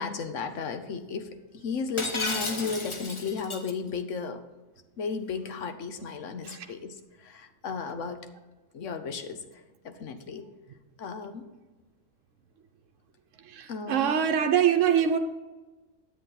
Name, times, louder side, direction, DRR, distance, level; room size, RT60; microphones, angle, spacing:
voice 1, 0.0-4.4 5.0-8.2 8.7-10.5 11.0-11.5 13.7-14.1, left 5 dB, 75° left, 1.2 m, -34 dB
Shatter, 2.0-3.7, left 2 dB, 30° left, 0.8 m, -33 dB
voice 2, 13.4-15.2, right 8 dB, 80° right, 1.0 m, -24 dB
10.5 x 8.3 x 4.0 m
omnidirectional pair, 1.3 m